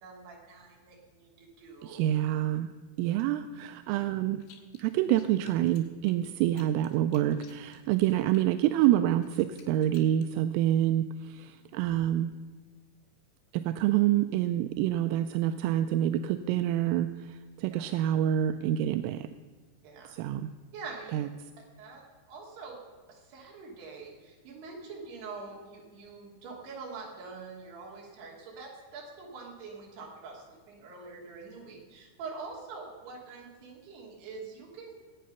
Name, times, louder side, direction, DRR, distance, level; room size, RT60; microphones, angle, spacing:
voice 1, 0.0-2.0 17.7-17.9 19.8-20.2 20.7-21.2 21.8-22.0 22.3-22.8 23.1-34.9, right 4 dB, 60° right, -2 dB, 4.5 m, -45 dB
voice 2, 1.8-2.7 3.0-4.4 4.8-12.3 13.5-19.3 20.1-20.5 21.1-21.3, right 12 dB, 85° right, 9 dB, 3.1 m, -27 dB
sound 1, 4.4-4.8 5.1-8.4 8.8-10.3, left 8 dB, 75° left, 3.7 m, -57 dB
21.0 x 8.5 x 5.6 m, 1.4 s
omnidirectional pair, 5.7 m